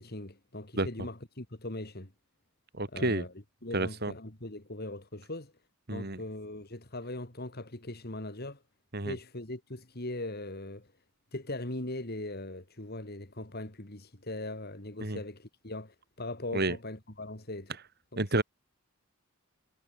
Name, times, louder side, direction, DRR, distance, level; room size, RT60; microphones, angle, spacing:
voice 1, 0.0-2.1 2.9-3.3 3.6-5.5 5.9-8.6 9.0-10.9 11.3-17.7 18.1-18.4, left 2 dB, 50° left, 3.2 m, -40 dB
voice 2, 2.7-3.2 3.7-4.1 5.9-6.2 8.9-9.2 15.0-15.2 16.5-16.8 18.2-18.4, right 2 dB, 50° right, 3.1 m, -30 dB
head